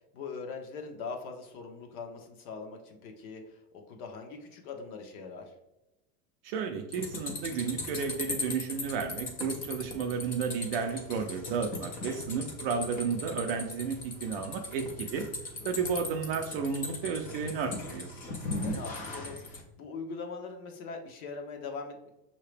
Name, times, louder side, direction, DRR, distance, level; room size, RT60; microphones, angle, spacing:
voice 1, 0.1-5.5 12.0-12.4 15.8-16.0 18.6-22.1, left 4 dB, 60° left, 3 dB, 1.0 m, -42 dB
voice 2, 6.4-15.2 15.6-18.1, right 6 dB, 40° right, 4 dB, 0.4 m, -32 dB
sound 1, 6.9-19.6, left 2 dB, 20° left, 0.4 m, -38 dB
5.7 x 2.8 x 3.3 m, 0.95 s
supercardioid pair, 150°, 48 cm